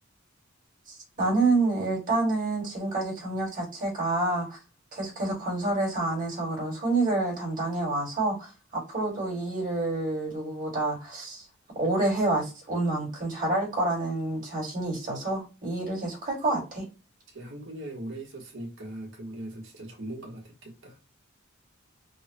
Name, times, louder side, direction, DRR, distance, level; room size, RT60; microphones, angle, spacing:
voice 1, 0.9-4.6 4.9-11.5 11.8-16.9, right 2 dB, 40° right, 1.8 m, -28 dB
voice 2, 17.3-21.0, right 1 dB, 65° right, 1.2 m, -40 dB
3.5 x 2.2 x 2.8 m
head